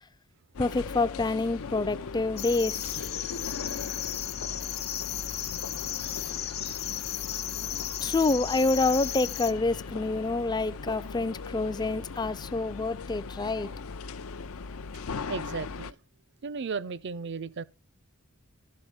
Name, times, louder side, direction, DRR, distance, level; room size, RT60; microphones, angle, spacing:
sound 1, 0.5-15.9, left 4 dB, 75° left, 0.6 m, -39 dB
voice 1, 0.6-3.0 8.0-13.7, left 3 dB, 20° left, 0.4 m, -27 dB
sound 2, 2.4-9.5, left 11 dB, 50° left, 0.9 m, -35 dB
voice 2, 15.3-16.0 16.4-17.6, right 5 dB, 55° right, 0.5 m, -35 dB
12.5 x 4.2 x 6.3 m
head